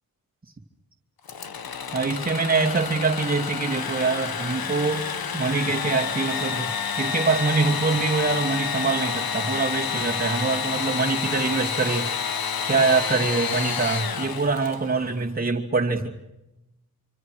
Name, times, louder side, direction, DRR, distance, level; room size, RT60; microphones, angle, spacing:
Engine / Sawing, 1.3-15.0, left 6 dB, 80° left, 1.7 m, -29 dB
voice 1, 1.9-5.1 5.3-12.1 12.7-16.1, right 4 dB, 25° right, -1 dB, 2.7 m, -24 dB
26.5 x 26.5 x 6.5 m, 0.93 s
wide cardioid pair, 165°, 36 cm